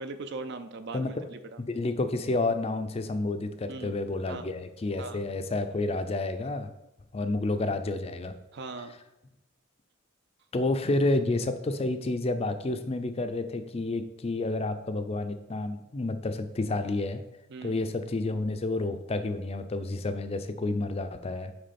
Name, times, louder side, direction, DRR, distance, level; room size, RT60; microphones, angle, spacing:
voice 1, 0.0-1.6 3.7-4.0 4.3-4.5 5.0-5.3 8.5-9.0 17.5-17.8, right 3 dB, 55° right, 10 dB, 0.5 m, -39 dB
voice 2, 0.9-1.3 1.6-6.7 7.1-8.4 10.5-17.2 17.6-21.5, left 2 dB, 30° left, 9 dB, 0.4 m, -30 dB
6.3 x 4.7 x 4.2 m, 0.90 s
head